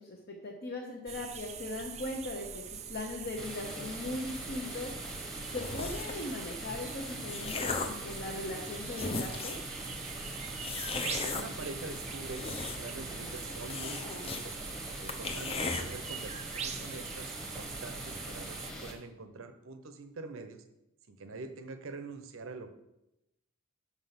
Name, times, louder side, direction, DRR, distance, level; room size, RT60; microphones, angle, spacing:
voice 1, 0.0-4.9 5.5-9.6, left 2 dB, 45° left, 0 dB, 0.9 m, -39 dB
sound 1, 1.1-18.7, right 7 dB, 30° right, 0.5 m, -43 dB
sound 2, 3.4-18.9, equal, 5° left, 1.0 m, -43 dB
sound 3, 5.6-6.2 6.9-8.0 8.6-8.7 8.9-9.7 10.6-11.4 12.1-13.0 13.3-13.4 13.7-14.4 14.7-14.8 15.1-15.8, left 4 dB, 25° left, 0.6 m, -36 dB
voice 2, 11.0-14.6 15.0-20.6 21.1-22.7, right 3 dB, 70° right, 9 dB, 0.8 m, -45 dB
6.1 x 5.6 x 5.8 m, 0.90 s
head